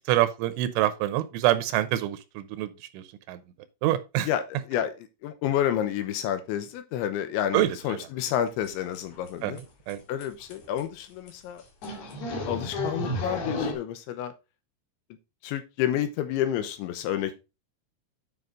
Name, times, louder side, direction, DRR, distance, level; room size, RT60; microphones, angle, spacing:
voice 1, 0.1-3.4 3.8-4.3 7.5-8.0 9.4-9.5 9.9-10.0, right 14 dB, 85° right, 3.2 m, -26 dB
voice 2, 5.2-9.6 10.1-11.6 12.5-14.3 15.4-17.4, left 10 dB, 80° left, 3.1 m, -29 dB
sound 1, 8.6-8.7 9.0-9.3 9.6-9.7 9.9-10.0 10.2-10.3 10.5-10.8 11.3-11.4 11.8-13.7, left 2 dB, 60° left, 4.0 m, -31 dB
9.3 x 5.6 x 3.8 m
omnidirectional pair, 5.5 m